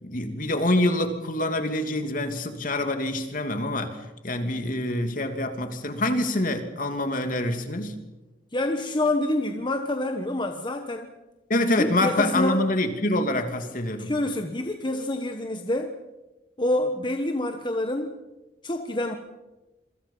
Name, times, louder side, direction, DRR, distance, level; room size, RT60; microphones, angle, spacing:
voice 1, 0.0-4.0 4.2-8.0 11.5-14.1, left 1 dB, 50° left, 6 dB, 2.8 m, -26 dB
voice 2, 8.5-11.1 11.8-12.6 14.0-16.0 16.6-18.2 18.6-19.1, left 1 dB, 25° left, 5 dB, 1.4 m, -27 dB
27.5 x 24.0 x 5.7 m, 1.1 s
head